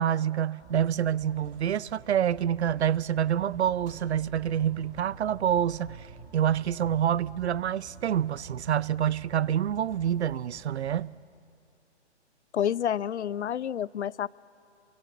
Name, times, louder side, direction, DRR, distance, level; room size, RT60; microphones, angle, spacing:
voice 1, 0.0-6.1 6.3-11.1, right 9 dB, 70° right, 0.6 m, -27 dB
sound 1, 0.6-11.0, right 5 dB, 20° right, 5.5 m, -49 dB
voice 2, 12.5-14.3, left 9 dB, 75° left, 0.6 m, -29 dB
28.5 x 24.0 x 8.2 m
hypercardioid pair, 150°, 34 cm